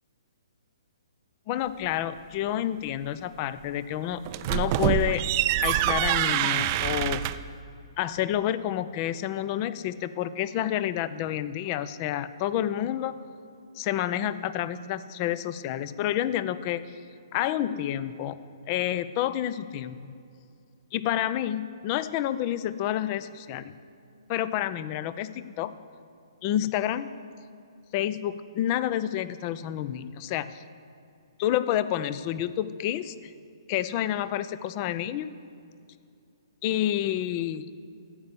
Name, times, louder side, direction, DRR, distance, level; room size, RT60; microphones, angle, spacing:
voice 1, 1.5-4.2 4.5-5.2 5.6-7.3 8.0-13.1 13.7-16.9 17.3-18.4 18.7-20.1 20.9-23.7 24.3-25.7 26.4-27.1 27.9-30.6 31.4-33.3 33.7-35.3 36.6-37.7, left 11 dB, 35° left, 15 dB, 0.5 m, -29 dB
sound 1, 4.2-7.5, right 13 dB, 35° right, 0.4 m, -25 dB
13.5 x 8.5 x 6.9 m, 2.5 s
hypercardioid pair, 135°, 3 cm